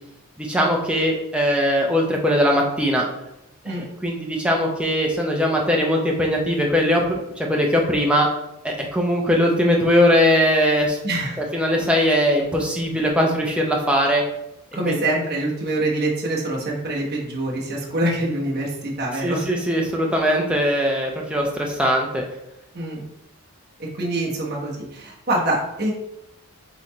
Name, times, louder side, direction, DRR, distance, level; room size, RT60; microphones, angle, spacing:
voice 1, 0.4-3.0 3.6-3.8 4.0-8.3 8.6-11.0 11.5-14.2 14.9-15.0 19.2-22.2, equal, 5° right, -1 dB, 0.6 m, -20 dB
voice 2, 11.0-11.4 14.7-19.5 22.7-23.0 23.8-25.9, right 1 dB, 45° right, -3 dB, 1.1 m, -25 dB
4.1 x 3.2 x 4.1 m, 0.86 s
head